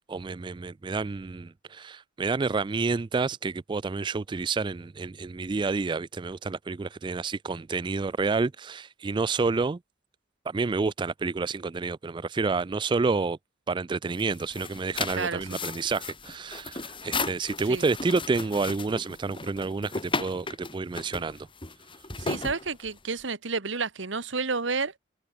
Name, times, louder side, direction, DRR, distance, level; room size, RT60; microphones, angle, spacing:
voice 1, 0.0-9.8 10.5-13.4 13.7-21.5, right 4 dB, 25° right, 0.3 m, -29 dB
sound 1, 14.1-23.2, left 3 dB, 25° left, 6.0 m, -35 dB
voice 2, 15.2-15.6 17.7-17.9 22.2-24.9, right 4 dB, 65° right, 1.5 m, -30 dB
head